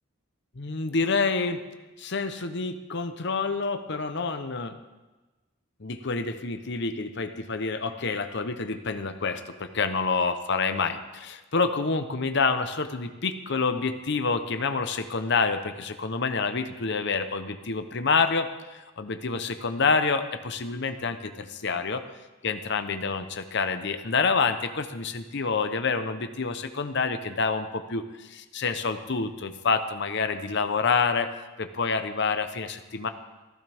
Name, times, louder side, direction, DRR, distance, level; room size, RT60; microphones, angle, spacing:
voice 1, 0.6-1.6 2.0-4.8 5.8-22.0 22.4-31.3 31.6-33.1, left 4 dB, 55° left, 8 dB, 0.9 m, -28 dB
15.5 x 15.0 x 3.6 m, 1.2 s
head